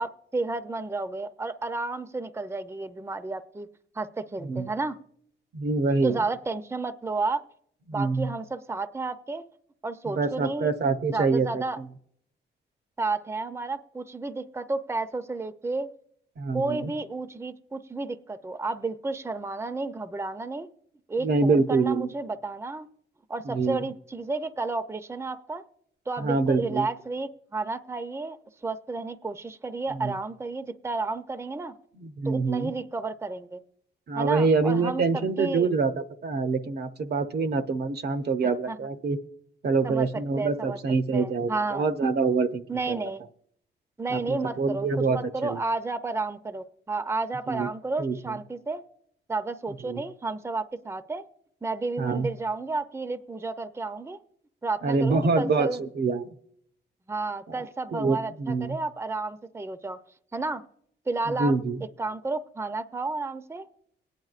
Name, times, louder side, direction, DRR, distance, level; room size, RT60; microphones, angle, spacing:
voice 1, 0.0-3.7 3.9-5.0 6.0-7.4 7.9-9.4 9.8-10.7 11.1-11.8 13.0-15.9 16.5-20.7 21.1-22.9 23.3-25.6 26.1-28.4 28.6-31.7 32.2-33.6 34.1-35.7 38.7-38.8 39.8-40.1 40.4-40.8 41.1-41.9 42.7-43.2 44.0-48.8 49.3-51.2 51.6-54.2 54.6-55.8 57.1-60.0 60.3-60.6 61.1-61.5 62.0-63.6, right 3 dB, 15° right, 10 dB, 0.6 m, -31 dB
voice 2, 4.4-4.7 5.5-6.2 7.9-8.3 10.1-11.9 16.4-16.9 21.2-22.1 23.5-23.9 26.2-26.9 29.9-30.1 32.0-32.7 34.1-39.2 39.6-43.0 44.1-45.6 47.5-47.7 48.0-48.4 49.8-50.0 52.0-52.3 54.8-56.2 57.5-57.6 57.9-58.8 61.3-61.8, right 4 dB, 55° right, 8 dB, 0.7 m, -26 dB
22.0 x 9.4 x 2.5 m, 0.69 s
cardioid pair, 65°, 19 cm